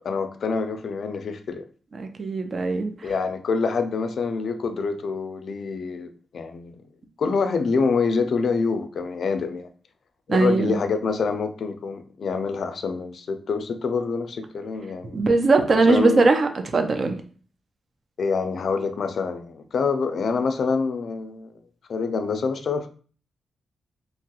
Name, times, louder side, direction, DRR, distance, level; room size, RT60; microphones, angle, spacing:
voice 1, 0.0-1.6 3.0-6.8 7.2-9.7 10.3-15.2 15.7-16.3 18.2-21.5 21.9-22.9, left 5 dB, 65° left, 9 dB, 0.3 m, -26 dB
voice 2, 1.9-3.1 10.3-10.8 15.1-17.2, right 3 dB, 45° right, 6 dB, 0.5 m, -20 dB
2.9 x 2.2 x 2.9 m, 0.41 s
cardioid pair, 110°, 0 cm